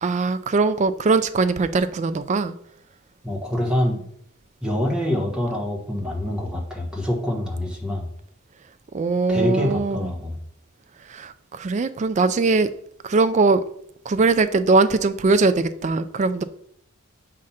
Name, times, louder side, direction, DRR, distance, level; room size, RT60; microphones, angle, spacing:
voice 1, 0.0-2.5 8.9-10.1 11.1-12.7 13.0-13.6 14.1-16.4, right 3 dB, 30° right, 12 dB, 0.3 m, -21 dB
voice 2, 3.2-4.0 4.6-8.1 9.3-10.4, left 1 dB, 5° right, -2 dB, 1.2 m, -25 dB
7.4 x 2.5 x 5.6 m, 0.69 s
head